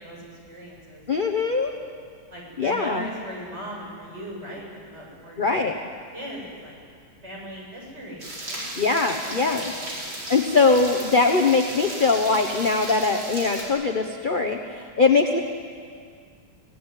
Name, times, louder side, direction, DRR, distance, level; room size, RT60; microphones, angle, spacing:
voice 1, 0.0-1.4 2.3-5.7 6.1-6.8 7.2-10.4, equal, 35° right, -3 dB, 7.2 m, -39 dB
voice 2, 1.1-1.7 2.6-3.0 5.4-5.7 8.8-9.7 10.3-15.4, left 4 dB, 30° left, 4 dB, 1.1 m, -21 dB
sound 1, 8.2-13.6, right 1 dB, 80° right, 5.3 m, -35 dB
25.0 x 18.0 x 9.9 m, 2.1 s
omnidirectional pair, 2.1 m